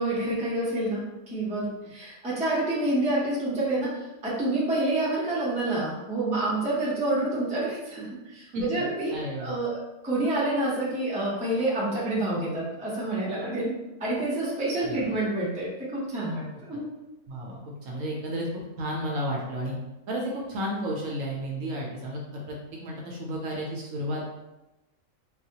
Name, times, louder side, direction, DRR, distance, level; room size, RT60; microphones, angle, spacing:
voice 1, 0.0-16.9, right 2 dB, 10° right, -6 dB, 0.4 m, -28 dB
voice 2, 9.1-9.6 14.8-15.1 16.7-16.8 17.3-18.5 18.8-19.7 20.1-24.2, equal, 65° right, -2 dB, 0.9 m, -32 dB
3.9 x 2.2 x 2.7 m, 1.0 s
omnidirectional pair, 1.6 m